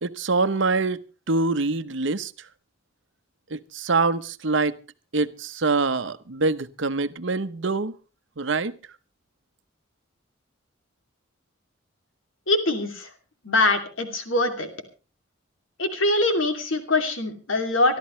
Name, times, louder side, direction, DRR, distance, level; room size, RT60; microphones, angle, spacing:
voice 1, 0.0-2.3 3.5-4.8 5.1-7.9 8.4-8.7, right 3 dB, 65° right, 12 dB, 0.9 m, -25 dB
voice 2, 12.5-13.1 13.4-14.7 15.8-18.0, left 2 dB, 80° left, 6 dB, 2.8 m, -23 dB
25.0 x 12.5 x 3.2 m, 0.33 s
head